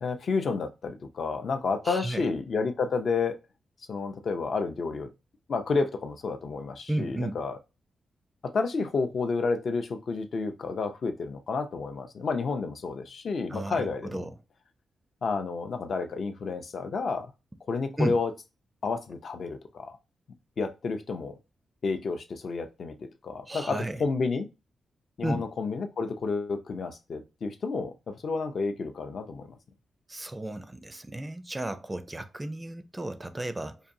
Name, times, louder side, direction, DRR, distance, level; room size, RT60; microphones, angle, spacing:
voice 1, 0.0-3.4 3.9-5.1 5.5-7.6 8.4-14.3 15.2-17.3 17.7-18.3 18.8-20.0 20.6-21.4 21.8-24.5 25.2-29.6, left 4 dB, 55° left, 0.5 m, -30 dB
voice 2, 1.9-2.3 6.9-7.4 13.5-14.3 18.0-18.2 23.5-24.0 25.2-25.4 30.1-33.8, right 1 dB, 15° right, 0.4 m, -33 dB
4.9 x 2.6 x 2.6 m
wide cardioid pair, 115°, 0 cm